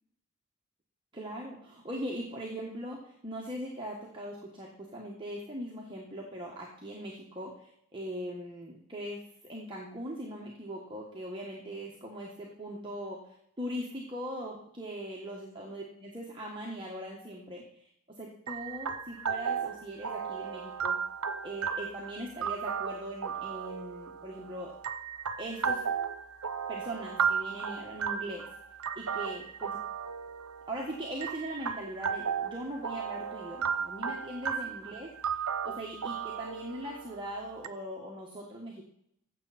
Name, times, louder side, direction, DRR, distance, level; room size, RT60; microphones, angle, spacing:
voice 1, 1.1-17.9 18.2-21.0 21.4-24.7 25.4-25.8 26.7-28.5 28.9-29.8 30.7-38.8, equal, 20° right, -3 dB, 1.4 m, -40 dB
sound 1, 18.5-37.7, right 6 dB, 85° right, 0.8 m, -35 dB
15.0 x 7.2 x 4.2 m, 0.72 s
head